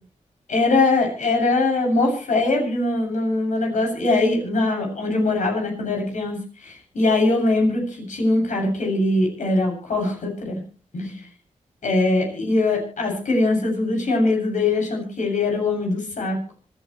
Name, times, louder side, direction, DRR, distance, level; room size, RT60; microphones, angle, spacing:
voice 1, 0.5-10.6 10.9-11.2 11.8-16.4, left 2 dB, 80° left, 2 dB, 7.7 m, -22 dB
26.5 x 12.0 x 3.2 m, 0.38 s
cardioid pair, 65°, 13 cm